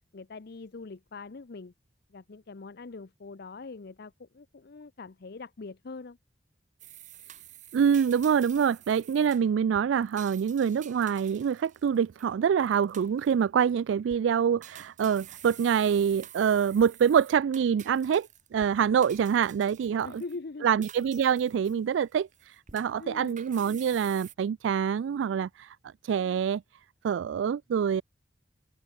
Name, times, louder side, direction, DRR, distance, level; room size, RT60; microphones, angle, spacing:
voice 1, 0.1-1.7 2.1-6.2 19.9-20.7 23.0-23.4, left 3 dB, 60° left, 0.6 m, -43 dB
sound 1, 6.8-12.3 12.7-13.4 13.9-14.2 14.6-18.7 19.0-20.4 20.8-22.0 22.3-24.3, right 10 dB, 45° right, 4.1 m, -49 dB
voice 2, 7.7-20.2 20.6-25.8 26.0-26.6 27.0-28.0, right 7 dB, 80° right, 0.3 m, -25 dB
open air
head